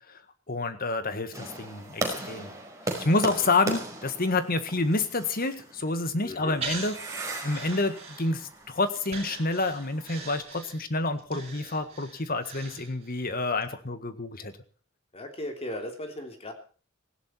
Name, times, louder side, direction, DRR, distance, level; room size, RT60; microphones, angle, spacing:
voice 1, 0.5-2.5 3.0-7.0 7.4-14.5, left 2 dB, 45° left, 10 dB, 1.8 m, -28 dB
sound 1, 1.3-10.4, right 1 dB, 15° right, 4.9 m, -38 dB
voice 2, 6.2-6.6 15.1-16.5, left 1 dB, 30° left, 5 dB, 3.4 m, -37 dB
Breathing, 6.6-8.6 9.1-13.2 13.6-13.7, right 4 dB, 30° right, 6.8 m, -40 dB
18.5 x 16.5 x 4.6 m, 0.40 s
head